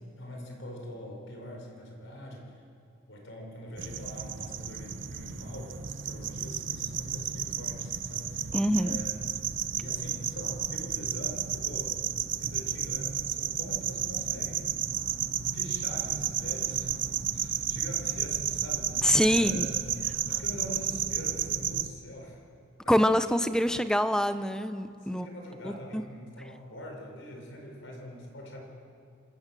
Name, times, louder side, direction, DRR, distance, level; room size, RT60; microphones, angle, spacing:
voice 1, 0.2-2.6 3.1-9.2 9.7-12.0 12.4-15.2 15.5-16.9 17.3-22.4 22.8-23.1 25.0-28.6, equal, 65° left, 1 dB, 4.9 m, -44 dB
sound 1, 3.8-21.9, right 9 dB, 60° right, 0.9 m, -32 dB
voice 2, 8.5-9.0 19.0-19.7 22.9-25.3 25.6-26.0, equal, 5° left, 11 dB, 0.6 m, -25 dB
26.5 x 14.0 x 7.6 m, 2.7 s
head